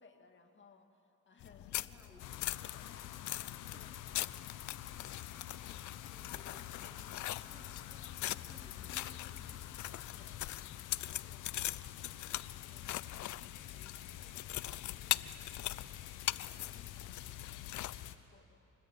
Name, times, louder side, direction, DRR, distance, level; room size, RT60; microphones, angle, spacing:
voice 1, 0.0-1.8 2.6-5.2 10.1-10.5 11.1-13.2 13.7-18.7, left 4 dB, 40° left, 4 dB, 2.5 m, -64 dB
sound 1, 1.4-18.1, left 15 dB, 75° left, 0.6 m, -42 dB
voice 2, 1.6-2.6 3.7-3.9 5.5-7.1 7.4-9.5, right 1 dB, 10° right, -2 dB, 4.7 m, -61 dB
sound 2, 2.2-18.2, left 12 dB, 90° left, 1.1 m, -48 dB
26.0 x 20.0 x 8.6 m, 2.8 s
cardioid pair, 90°, 30 cm